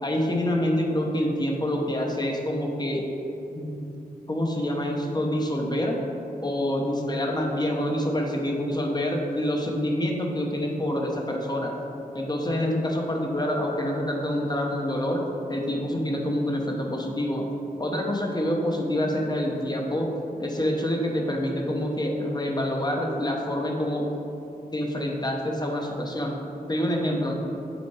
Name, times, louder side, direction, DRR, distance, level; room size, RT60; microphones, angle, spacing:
voice 1, 0.0-3.1 3.5-3.8 4.3-6.0 6.4-11.8 12.1-15.2 15.5-17.4 17.8-20.1 20.4-24.1 24.7-26.4 26.7-27.3, left 1 dB, 25° left, 0 dB, 1.0 m, -26 dB
7.1 x 4.2 x 4.8 m, 2.8 s
wide cardioid pair, 85°, 16 cm